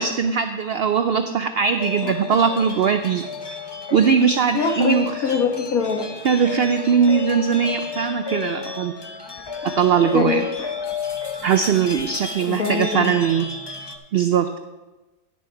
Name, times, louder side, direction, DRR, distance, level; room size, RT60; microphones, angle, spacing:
voice 1, 0.0-3.2 3.9-5.1 6.2-8.9 9.8-10.4 11.4-13.5 14.1-14.6, right 6 dB, 80° right, 8 dB, 0.5 m, -20 dB
sound 1, 1.8-14.0, left 5 dB, 35° left, 0.4 m, -32 dB
voice 2, 4.5-6.1 10.1-10.4 12.4-13.1, left 5 dB, 70° left, 3 dB, 1.7 m, -23 dB
11.0 x 7.0 x 4.7 m, 1.1 s
omnidirectional pair, 1.6 m